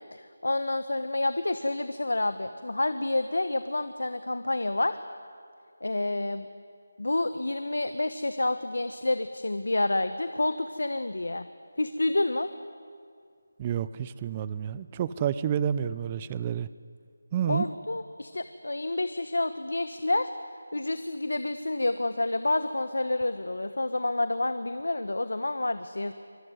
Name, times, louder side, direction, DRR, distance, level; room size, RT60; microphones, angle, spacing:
voice 1, 0.1-5.0 5.8-6.5 7.0-11.5 11.8-12.5 17.5-20.3 20.7-26.1, left 2 dB, 80° left, 11 dB, 1.1 m, -29 dB
voice 2, 13.6-16.7 17.3-17.7, right 9 dB, 20° right, 16 dB, 0.6 m, -29 dB
24.5 x 19.5 x 9.5 m, 2.3 s
figure-of-eight pair, 165°, 0 cm